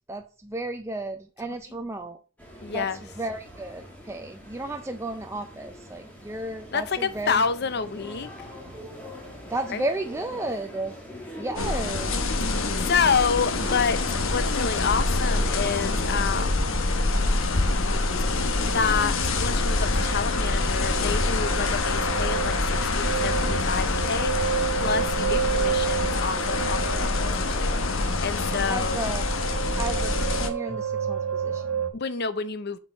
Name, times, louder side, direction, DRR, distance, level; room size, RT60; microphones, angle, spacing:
voice 1, 0.1-2.2 2.7-7.4 9.5-10.9 11.4-12.5 28.7-29.2 29.8-31.8, right 2 dB, 15° right, 0.4 m, -33 dB
sound 1, 2.4-16.5, equal, 5° left, 2.0 m, -42 dB
voice 2, 2.6-3.0 6.7-8.3 9.7-9.9 12.5-16.8 18.6-29.0 31.9-32.8, left 5 dB, 50° left, 0.6 m, -28 dB
sound 2, 11.6-30.5, left 3 dB, 70° left, 1.0 m, -25 dB
sound 3, 16.9-17.6 17.9-31.9, right 8 dB, 65° right, 1.5 m, -32 dB
7.3 x 4.6 x 5.5 m
head